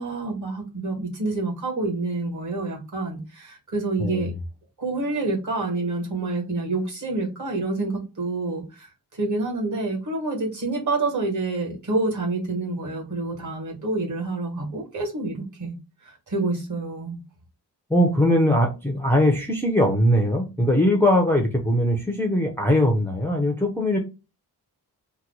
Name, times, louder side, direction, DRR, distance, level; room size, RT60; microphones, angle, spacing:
voice 1, 0.0-4.3 4.8-8.9 9.2-15.7 16.0-17.2, right 2 dB, 45° right, 0 dB, 1.4 m, -28 dB
voice 2, 4.0-4.3 17.9-24.0, left 1 dB, 5° left, 1 dB, 0.5 m, -21 dB
2.9 x 2.1 x 3.9 m, 0.29 s
wide cardioid pair, 165°, 40 cm